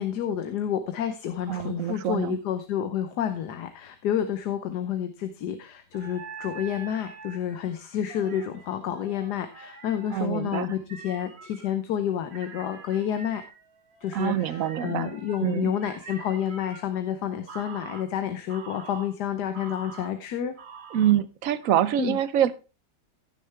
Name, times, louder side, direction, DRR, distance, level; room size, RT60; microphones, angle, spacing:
voice 1, 0.0-13.4 14.0-20.5 22.0-22.2, left 9 dB, 75° left, 9 dB, 1.4 m, -29 dB
voice 2, 1.5-2.4 10.1-10.7 14.1-15.1 15.4-15.7 20.9-22.5, right 11 dB, 65° right, 16 dB, 0.9 m, -25 dB
sound 1, 5.9-11.7 12.3-16.8 17.5-18.0 18.5-19.1 19.5-20.1 20.6-21.1 21.6-21.7, right 5 dB, 40° right, 1.3 m, -45 dB
15.5 x 6.5 x 3.3 m, 0.31 s
omnidirectional pair, 1.8 m